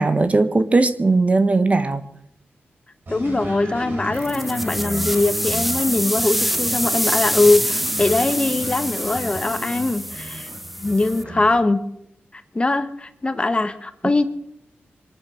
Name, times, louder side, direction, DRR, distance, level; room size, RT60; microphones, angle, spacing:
voice 1, 0.0-2.0, right 3 dB, 35° right, 1.1 m, -18 dB
voice 2, 3.1-10.5 10.8-11.8 12.3-14.2, left 2 dB, 25° left, 1.2 m, -21 dB
sound 1, 3.1-11.6, equal, 55° right, 5.1 m, -33 dB
sound 2, 4.1-11.2, equal, ahead, 0.8 m, -26 dB
23.5 x 9.7 x 6.3 m
wide cardioid pair, 90°, 4 cm